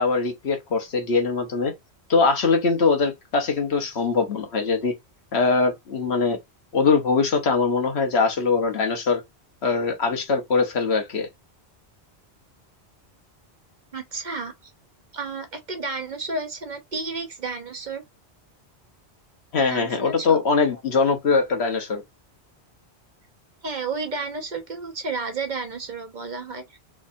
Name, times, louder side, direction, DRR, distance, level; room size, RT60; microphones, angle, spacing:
voice 1, 0.0-1.7 2.1-4.9 5.3-6.4 6.7-9.2 9.6-11.3 19.5-22.0, left 4 dB, 75° left, 1.3 m, -22 dB
voice 2, 13.9-14.7 15.1-18.0 19.7-20.4 20.7-20.8 23.6-26.8, right 3 dB, 45° right, 0.9 m, -32 dB
3.5 x 3.2 x 2.6 m
omnidirectional pair, 1.1 m